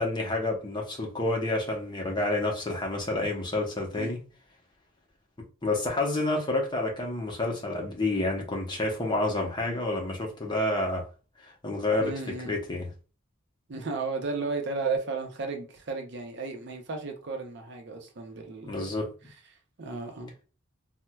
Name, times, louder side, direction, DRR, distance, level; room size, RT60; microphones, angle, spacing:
voice 1, 0.0-4.2 5.6-11.1 11.4-12.1 12.4-12.9 18.6-19.3, left 2 dB, 20° left, 0.8 m, -29 dB
voice 2, 12.0-12.6 13.7-18.9 19.8-20.3, right 4 dB, 55° right, 0.6 m, -34 dB
4.3 x 2.1 x 2.2 m
head